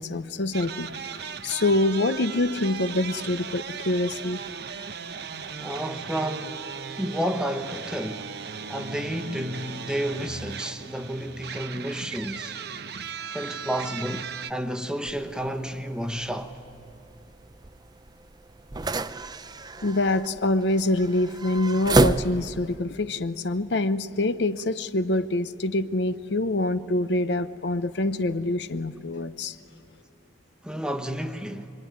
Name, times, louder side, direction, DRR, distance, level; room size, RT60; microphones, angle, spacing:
voice 1, 0.0-4.4 19.8-29.5, left 2 dB, 70° left, 0.7 m, -25 dB
sound 1, 0.5-14.5, right 6 dB, 60° right, 0.8 m, -37 dB
voice 2, 5.6-6.6 7.0-8.3 8.7-12.5 13.3-16.6 30.6-31.7, equal, 5° right, 1.0 m, -31 dB
sound 2, 15.1-22.8, right 2 dB, 25° right, 0.5 m, -30 dB
25.5 x 24.5 x 9.5 m
head